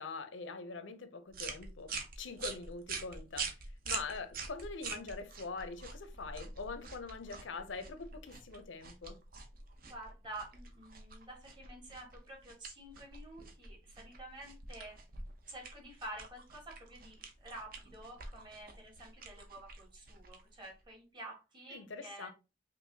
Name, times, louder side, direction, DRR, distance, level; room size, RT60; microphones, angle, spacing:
voice 1, 0.0-3.5 3.9-9.2 21.7-22.3, left 4 dB, 85° left, 0.6 m, -43 dB
sound 1, 1.3-20.9, right 4 dB, 50° right, 0.7 m, -46 dB
voice 2, 9.8-15.0 15.5-22.3, right 1 dB, 25° right, 1.4 m, -49 dB
5.4 x 2.6 x 2.7 m
head